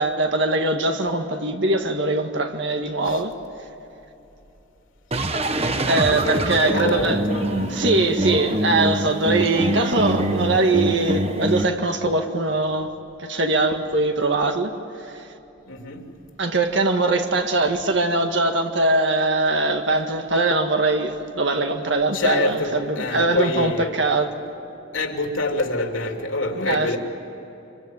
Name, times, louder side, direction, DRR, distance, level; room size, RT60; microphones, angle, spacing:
voice 1, 0.0-3.3 5.9-7.2 7.7-12.9 13.2-14.7 15.1-15.2 16.4-24.3 26.7-27.0, right 2 dB, 65° right, 1.7 m, -22 dB
sound 1, 5.1-11.6, right 1 dB, 30° right, 1.2 m, -24 dB
voice 2, 5.9-8.0 15.6-16.1 22.1-23.9 24.9-27.0, left 2 dB, 80° left, 3.4 m, -26 dB
26.0 x 23.5 x 9.6 m
head